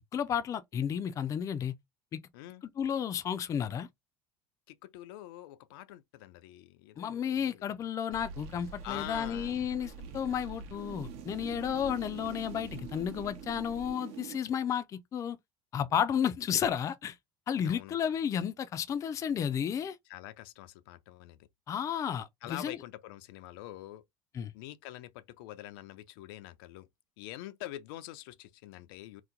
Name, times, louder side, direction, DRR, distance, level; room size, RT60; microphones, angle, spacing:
voice 1, 0.1-1.7 2.1-2.2 2.8-3.9 7.0-15.4 15.7-17.2 17.5-20.0 21.7-22.8 24.3-24.5, left 8 dB, 30° left, 0.4 m, -32 dB
voice 2, 4.7-7.7 8.8-9.6 17.6-18.0 20.1-21.5 22.4-24.0 24.5-26.9 27.2-29.2, left 14 dB, 85° left, 0.5 m, -45 dB
sound 1, 8.1-14.4, right 6 dB, 60° right, 0.9 m, -44 dB
2.9 x 2.1 x 3.7 m
cardioid pair, 135°, 11 cm